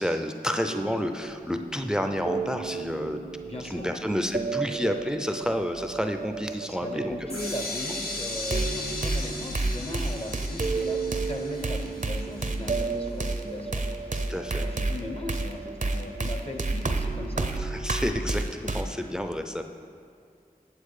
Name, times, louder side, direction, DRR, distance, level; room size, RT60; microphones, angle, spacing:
voice 1, 0.0-3.2 3.6-7.2 14.3-14.6 17.6-19.6, equal, 5° right, 6 dB, 0.5 m, -30 dB
sound 1, 0.7-18.8, right 3 dB, 55° right, 0.6 m, -31 dB
voice 2, 3.4-3.9 6.6-14.2 14.5-17.5, left 1 dB, 40° left, 4 dB, 0.9 m, -38 dB
sound 2, 7.3-13.1, left 2 dB, 80° left, 1.3 m, -37 dB
8.7 x 7.6 x 4.9 m, 2.3 s
wide cardioid pair, 45°, 16 cm